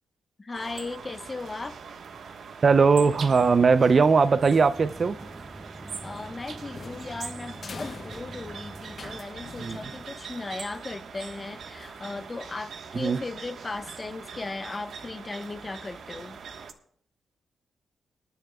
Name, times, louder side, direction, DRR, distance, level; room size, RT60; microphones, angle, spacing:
voice 1, 0.4-1.8 5.8-16.4, left 3 dB, 35° left, 1.1 m, -37 dB
sound 1, 0.5-16.7, right 6 dB, 70° right, 1.3 m, -42 dB
sound 2, 2.6-9.2, right 1 dB, 15° right, 0.6 m, -45 dB
voice 2, 2.6-5.2 9.6-9.8 12.9-13.2, right 5 dB, 50° right, 0.5 m, -20 dB
sound 3, 6.0-10.4, left 4 dB, 55° left, 0.9 m, -44 dB
26.0 x 9.9 x 2.3 m
cardioid pair, 60°, 0 cm